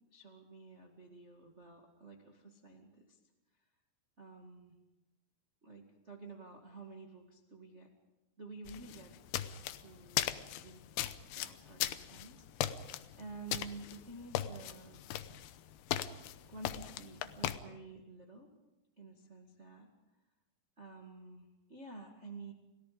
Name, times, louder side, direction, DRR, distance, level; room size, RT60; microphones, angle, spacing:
voice 1, 0.1-3.2 4.2-4.8 5.6-7.9 8.4-9.1 9.8-10.9 11.3-15.1 16.5-18.5 19.0-19.9 20.8-22.5, right 3 dB, 45° right, 1 dB, 0.8 m, -51 dB
sound 1, 8.7-17.6, left 12 dB, 75° left, 2.6 m, -38 dB
30.0 x 18.0 x 5.1 m, 1.0 s
omnidirectional pair, 5.0 m